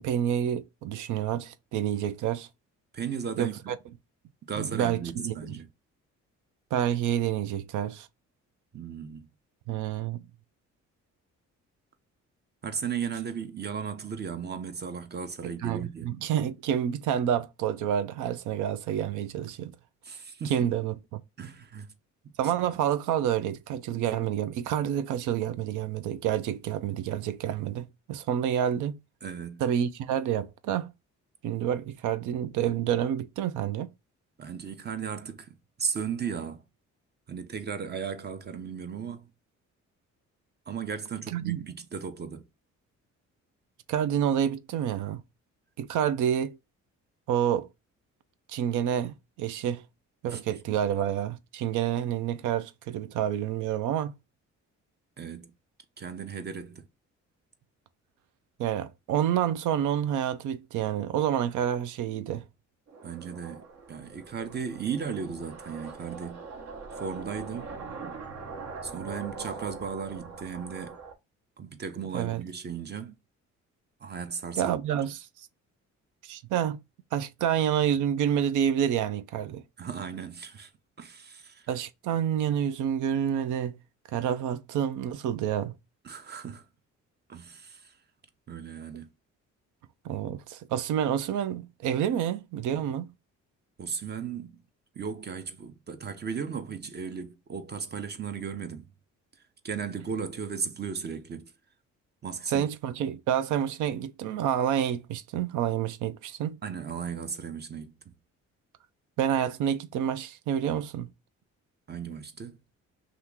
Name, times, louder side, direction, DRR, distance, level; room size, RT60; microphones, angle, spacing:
voice 1, 0.0-2.5 3.4-3.8 4.6-5.5 6.7-8.1 9.7-10.2 15.4-19.7 20.4-21.2 22.4-29.0 29.6-30.9 31.4-33.9 41.3-41.6 43.9-45.2 45.8-46.6 47.3-47.7 48.5-49.8 50.2-54.1 58.6-62.4 72.1-72.4 74.6-75.3 76.2-76.8 77.1-79.6 81.7-83.8 84.1-85.7 90.0-93.1 102.5-106.6 109.2-111.1, right 10 dB, 80° right, 0.5 m, -28 dB
voice 2, 2.9-3.5 4.4-5.7 8.7-9.3 12.6-16.1 20.0-20.6 21.4-21.9 22.2-22.3 22.7-22.8 29.2-29.6 34.4-36.6 37.3-39.3 40.7-42.4 50.3-50.4 50.7-50.8 55.2-55.5 56.0-56.9 63.0-63.6 63.9-66.4 67.0-67.7 68.8-71.0 71.6-73.1 74.0-75.0 79.8-80.7 81.0-81.7 86.0-86.6 87.3-87.9 88.5-89.1 93.8-94.6 95.0-98.9 99.6-101.5 102.2-102.6 106.6-108.1 111.9-112.6, right 6 dB, 35° right, 0.7 m, -36 dB
sound 1, 62.9-71.1, right 4 dB, 60° right, 1.0 m, -42 dB
2.8 x 2.5 x 3.5 m
cardioid pair, 90°, 30 cm